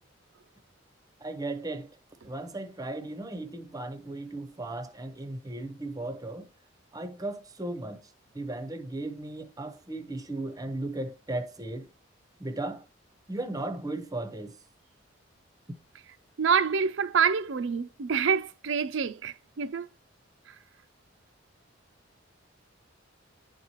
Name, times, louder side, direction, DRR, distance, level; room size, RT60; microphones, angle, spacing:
voice 1, 1.2-2.0 2.2-6.5 6.9-8.0 8.3-11.9 12.4-12.9 13.3-14.6, right 2 dB, 20° right, 0.7 m, -36 dB
voice 2, 16.4-19.9, right 6 dB, 70° right, 0.5 m, -26 dB
10.5 x 4.1 x 3.0 m
head